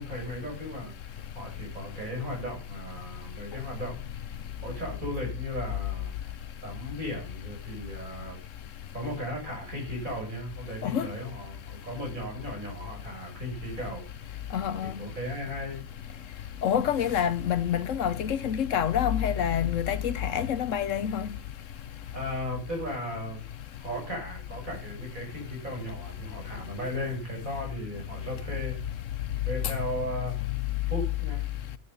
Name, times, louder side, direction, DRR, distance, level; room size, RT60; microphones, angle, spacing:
voice 1, 0.0-4.0 4.6-6.3 6.6-8.4 8.9-14.0 14.8-15.8 22.1-23.4 23.8-28.8 29.5-30.3 30.9-31.4, equal, 70° right, 7.1 m, -36 dB
voice 2, 14.5-14.9 16.6-21.3, left 9 dB, 65° left, 1.1 m, -27 dB
12.5 x 8.1 x 5.4 m
omnidirectional pair, 1.5 m